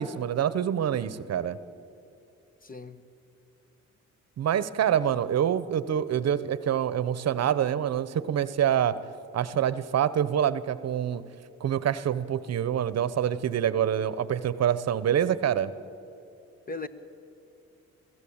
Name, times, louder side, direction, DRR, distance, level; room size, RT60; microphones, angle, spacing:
voice 1, 0.0-1.6 4.4-8.9 9.3-11.2 11.6-15.7, right 9 dB, 55° right, 0.9 m, -26 dB
voice 2, 2.6-3.1 16.7-16.9, left 3 dB, 30° left, 1.1 m, -37 dB
23.0 x 15.0 x 8.7 m
cardioid pair, 90°, 30 cm